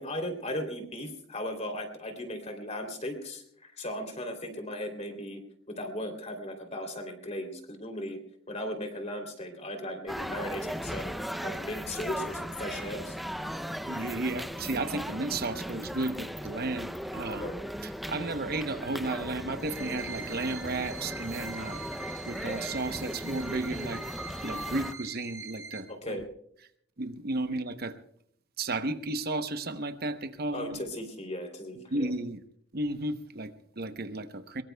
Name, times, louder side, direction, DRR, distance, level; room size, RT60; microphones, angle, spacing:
voice 1, 0.0-5.4 5.7-8.2 8.5-11.1 11.4-13.2 17.3-17.6 25.9-26.2 30.5-32.1, left 1 dB, 35° left, 5 dB, 3.0 m, -37 dB
sound 1, 10.1-24.9, equal, ahead, 0.5 m, -37 dB
voice 2, 13.8-17.5 18.1-21.9 22.3-24.0 24.4-26.2 27.0-28.0 28.6-30.8 31.9-32.4 32.7-34.6, right 2 dB, 55° right, 9 dB, 0.9 m, -33 dB
sound 2, 19.6-25.8, right 4 dB, 15° right, 1.7 m, -43 dB
23.0 x 22.0 x 2.3 m, 0.67 s
head